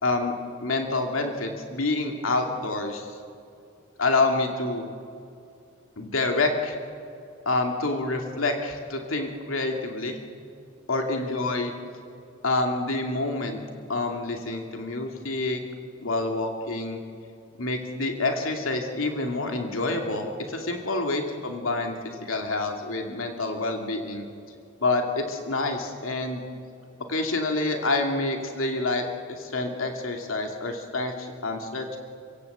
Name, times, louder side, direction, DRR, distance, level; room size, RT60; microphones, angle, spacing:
voice 1, 0.0-0.3 0.6-3.1 4.0-4.9 6.0-6.8 7.5-10.2 10.9-11.7 12.4-13.6 13.9-15.6 16.0-17.0 17.6-21.9 22.2-24.3 24.8-26.4 27.1-29.0 29.3-32.0, left 2 dB, 85° left, 3 dB, 2.4 m, -27 dB
29.5 x 16.5 x 8.0 m, 2.6 s
head